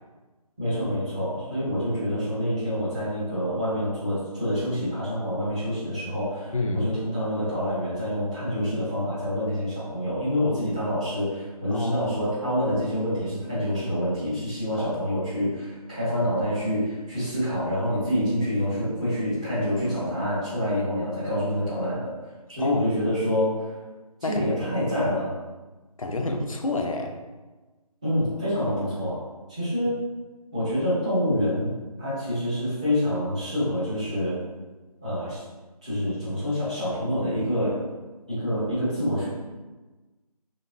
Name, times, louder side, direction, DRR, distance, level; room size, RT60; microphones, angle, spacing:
voice 1, 0.6-22.1 22.5-23.8 24.3-25.3 28.0-29.2 29.5-30.0 30.5-34.4 35.0-35.4 35.8-37.8 38.3-39.3, equal, 10° right, -14 dB, 0.7 m, -27 dB
voice 2, 6.5-6.9 11.7-12.1 14.8-14.9 22.6-22.9 24.2-24.6 26.0-27.2, left 2 dB, 55° left, 3 dB, 0.5 m, -28 dB
3.4 x 3.0 x 2.5 m, 1.2 s
figure-of-eight pair, 160°, 20 cm